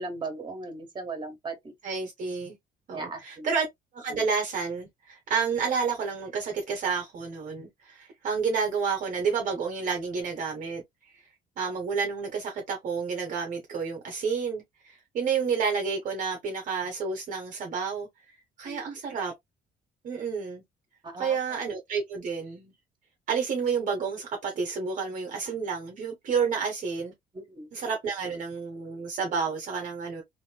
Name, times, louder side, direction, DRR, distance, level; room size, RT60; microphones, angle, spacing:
voice 1, 0.0-1.6 2.9-3.5 18.6-18.9 21.0-21.4 27.3-27.7, right 3 dB, 25° right, 1.3 m, -37 dB
voice 2, 1.8-2.6 2.9-3.7 3.9-10.8 11.6-19.3 20.0-20.6 21.2-22.7 23.3-27.1 27.7-30.2, right 5 dB, 50° right, 0.8 m, -30 dB
3.0 x 2.6 x 2.3 m
cardioid pair, 110°, 17 cm